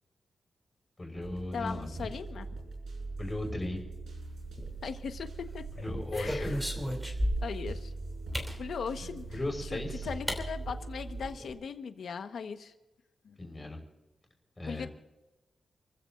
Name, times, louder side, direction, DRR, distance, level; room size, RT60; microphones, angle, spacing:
voice 1, 1.0-2.1 3.2-3.8 5.8-6.5 9.0-10.1 13.4-13.8 14.6-14.9, left 1 dB, 20° left, 1 dB, 5.8 m, -37 dB
sound 1, 1.1-11.3, right 3 dB, 75° right, 6.0 m, -41 dB
voice 2, 1.5-2.5 4.8-5.6 6.1-6.6 7.4-7.9 8.6-9.2 9.6-12.7 13.2-13.5 14.7-14.9, left 6 dB, 75° left, 7 dB, 1.3 m, -38 dB
sound 2, 4.4-5.1 5.7-7.7 8.3-8.6 9.7-9.8 10.3-10.4 10.8-10.9 11.1-11.5, equal, 5° right, 3.1 m, -35 dB
29.5 x 15.5 x 2.6 m, 1.1 s
wide cardioid pair, 120°, 0 cm